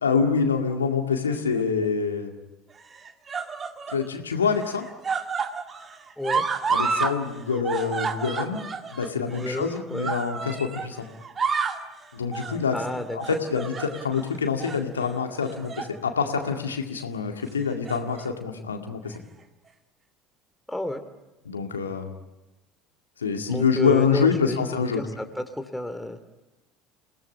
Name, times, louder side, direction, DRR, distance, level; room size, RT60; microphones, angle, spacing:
voice 1, 0.0-2.3 3.9-4.9 6.7-8.6 8.9-11.1 12.1-12.8 13.1-19.1 21.5-22.1 23.2-25.0, left 6 dB, 80° left, 4 dB, 2.1 m, -26 dB
sound 1, 1.3-1.9 2.8-4.1 4.4-7.2 7.4-10.9 11.2-11.9 12.3-12.6 13.2-14.2 14.6-14.8 15.5-16.0 16.3-16.5 17.6-18.3 19.1-19.2, right 5 dB, 30° right, 1.9 m, -30 dB
voice 2, 6.2-6.5 9.2-10.1 12.7-13.4 20.7-21.0 23.5-26.2, left 1 dB, 5° left, 7 dB, 2.6 m, -31 dB
28.5 x 18.0 x 9.8 m, 1.0 s
figure-of-eight pair, 65°, 0 cm